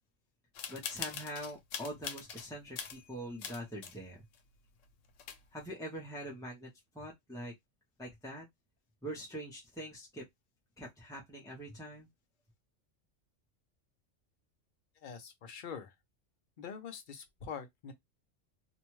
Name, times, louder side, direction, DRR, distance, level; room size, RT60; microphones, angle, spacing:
sound 1, 0.5-2.5 2.8-4.0 4.3-4.4 4.9-5.0 5.2-5.6, left 7 dB, 85° left, 0.9 m, -42 dB
voice 1, 0.7-4.2 5.5-7.5 8.0-8.5 9.0-10.2 10.8-12.1, equal, 5° left, 0.5 m, -44 dB
voice 2, 15.0-15.9 16.6-17.9, left 6 dB, 50° left, 0.7 m, -44 dB
2.7 x 2.2 x 3.0 m
omnidirectional pair, 1.2 m